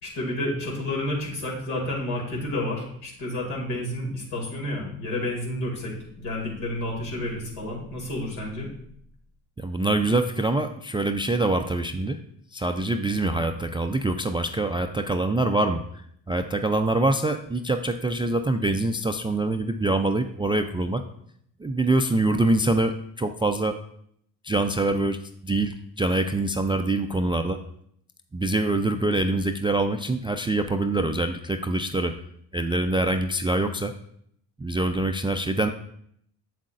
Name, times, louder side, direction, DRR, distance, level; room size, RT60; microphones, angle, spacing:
voice 1, 0.0-8.7, left 1 dB, 70° left, -2 dB, 2.6 m, -30 dB
voice 2, 9.6-12.2 12.5-15.8 16.3-21.0 21.6-23.8 24.4-25.2 25.4-27.6 28.3-32.1 32.5-33.9 34.6-35.7, right 2 dB, 10° right, 8 dB, 0.3 m, -24 dB
7.4 x 7.4 x 2.5 m, 0.68 s
hypercardioid pair, 55°, 49 cm